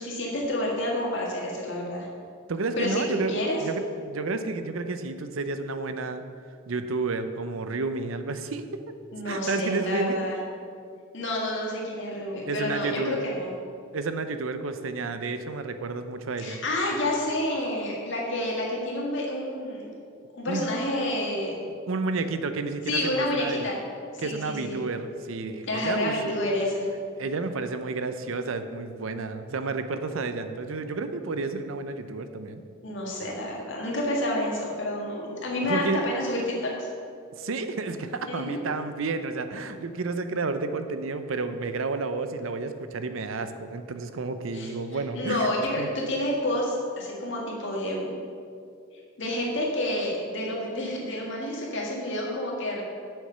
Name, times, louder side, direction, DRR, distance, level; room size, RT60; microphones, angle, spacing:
voice 1, 0.0-2.1 2.8-3.6 9.1-10.4 11.1-13.5 16.4-19.9 20.4-21.5 22.9-23.8 24.1-24.8 25.7-26.9 32.8-36.9 38.2-38.6 44.5-44.7 45.1-48.1 49.2-52.8, left 1 dB, 65° left, -2 dB, 1.9 m, -29 dB
voice 2, 2.5-6.2 6.7-8.9 9.3-10.2 12.5-13.2 13.9-16.6 20.5-20.7 21.6-23.7 24.2-26.3 27.2-32.6 35.7-36.0 37.4-45.9, right 3 dB, 80° right, 9 dB, 0.6 m, -31 dB
8.1 x 6.6 x 5.5 m, 2.3 s
head